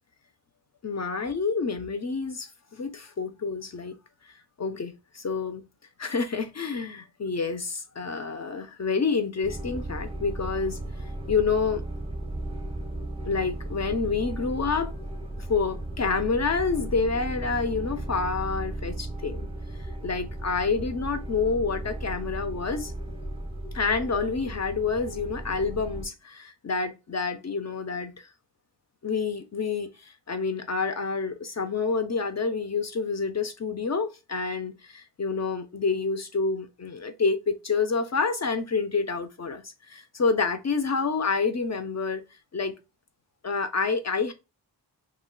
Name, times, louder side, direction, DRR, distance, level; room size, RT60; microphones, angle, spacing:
voice 1, 0.8-4.0 4.3-5.6 6.0-10.8 11.3-11.8 13.2-14.9 15.4-19.5 20.0-22.9 23.7-28.3 29.0-42.2 42.5-42.7 43.4-44.3, left 4 dB, 40° left, 0.4 m, -28 dB
sound 1, 9.4-26.1, right 1 dB, 15° right, 0.5 m, -35 dB
2.3 x 2.2 x 3.6 m
wide cardioid pair, 60°, 42 cm